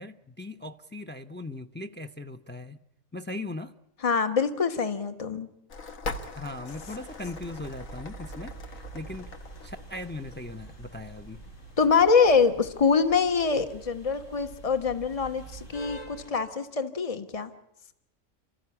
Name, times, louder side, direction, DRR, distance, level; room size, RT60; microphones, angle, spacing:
voice 1, 0.0-2.8 3.1-3.7 6.4-9.3 9.6-11.4, left 2 dB, 10° left, 7 dB, 0.6 m, -39 dB
voice 2, 4.0-5.5 11.8-17.5, left 5 dB, 25° left, 8 dB, 1.3 m, -24 dB
sound 1, 5.7-15.7, left 3 dB, 90° left, 2.0 m, -44 dB
sound 2, 6.7-16.3, right 4 dB, 70° left, 5.6 m, -46 dB
29.0 x 14.0 x 9.8 m, 0.86 s
omnidirectional pair, 1.4 m